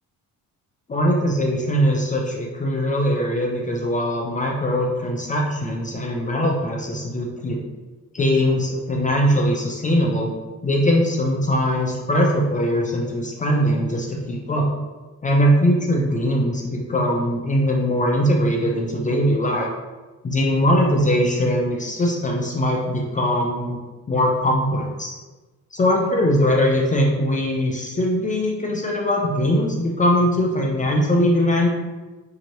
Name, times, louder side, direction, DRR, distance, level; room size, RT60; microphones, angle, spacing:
voice 1, 0.9-7.6 8.1-10.3 10.6-14.7 15.2-19.7 20.2-23.8 24.1-25.1 25.7-31.7, equal, 25° left, -1 dB, 0.4 m, -21 dB
2.8 x 2.6 x 2.9 m, 1.2 s
cardioid pair, 120°, 32 cm